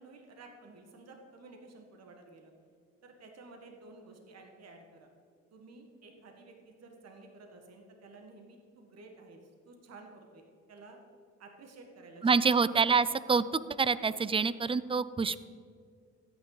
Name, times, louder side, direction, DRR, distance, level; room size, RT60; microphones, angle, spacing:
voice 1, 0.0-2.5 3.0-5.1 5.5-11.0 11.4-13.0, right 3 dB, 55° right, 3 dB, 1.6 m, -53 dB
voice 2, 12.2-13.4 13.8-15.4, right 5 dB, 20° right, 17 dB, 0.4 m, -26 dB
14.0 x 9.6 x 4.0 m, 2.2 s
cardioid pair, 90°, 30 cm